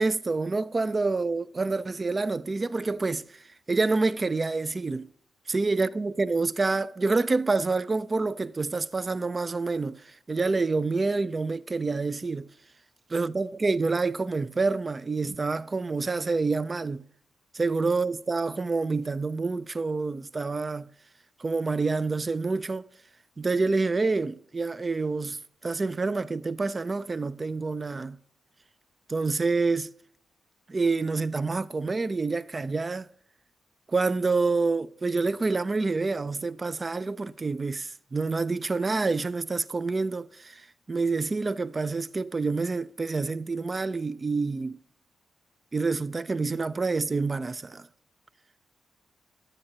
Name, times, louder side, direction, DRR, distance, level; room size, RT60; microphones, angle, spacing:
voice 1, 0.0-3.2 3.7-5.1 5.5-10.0 10.3-12.5 13.1-17.0 17.5-20.9 21.4-22.9 23.4-28.2 29.1-29.9 30.7-33.1 33.9-40.6 40.9-44.8 45.7-47.9, right 3 dB, 35° right, 0.4 m, -27 dB
9.8 x 7.8 x 2.7 m
cardioid pair, 60°, 0 cm